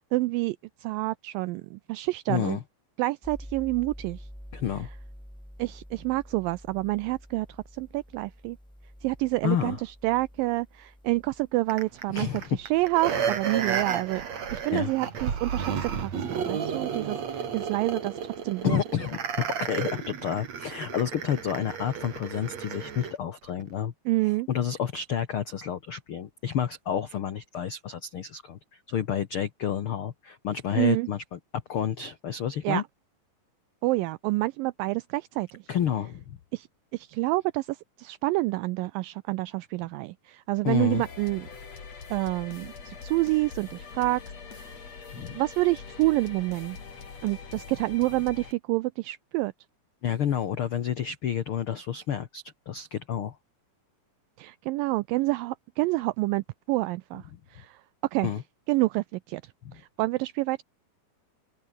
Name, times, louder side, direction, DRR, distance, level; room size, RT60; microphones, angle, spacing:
voice 1, 0.1-2.6 3.0-4.3 5.6-7.5 7.7-8.6 9.0-12.3 12.6-14.2 14.5-18.2 18.4-18.8 24.1-24.5 30.8-31.1 32.6-32.8 33.8-35.6 36.5-36.7 36.9-41.5 42.1-44.2 44.5-44.8 45.2-46.8 47.2-49.5 54.4-57.2 57.5-57.8 58.1-58.3 58.7-59.4 59.7-60.6, right 20 dB, 80° right, 2.2 m, -28 dB
voice 2, 2.3-2.6 4.5-4.9 9.4-9.8 12.1-12.6 14.7-14.9 18.6-23.9 24.2-28.6 28.9-31.4 31.7-32.8 35.7-36.4 40.6-41.0 45.1-45.4 50.0-53.4 58.2-58.4 59.6-59.8, left 9 dB, 75° left, 1.2 m, -30 dB
sound 1, 3.2-13.9, equal, ahead, 4.3 m, -48 dB
sound 2, 11.7-23.2 23.6-23.7, right 7 dB, 50° right, 3.6 m, -32 dB
sound 3, 40.9-48.5, left 5 dB, 45° left, 4.7 m, -43 dB
open air
omnidirectional pair, 4.3 m